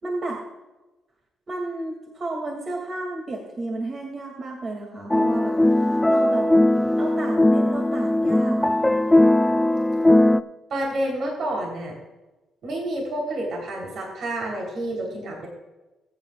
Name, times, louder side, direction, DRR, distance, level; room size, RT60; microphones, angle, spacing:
voice 1, 0.0-0.4 1.5-5.8 6.1-6.5 7.0-8.8, right 2 dB, 40° right, 0 dB, 2.4 m, -32 dB
sound 1, 5.1-10.4, left 1 dB, 10° left, 0.4 m, -19 dB
voice 2, 10.7-11.9 12.6-15.5, right 1 dB, 65° right, -1 dB, 3.6 m, -29 dB
21.5 x 9.1 x 2.4 m, 1.1 s
cardioid pair, 90°, 0 cm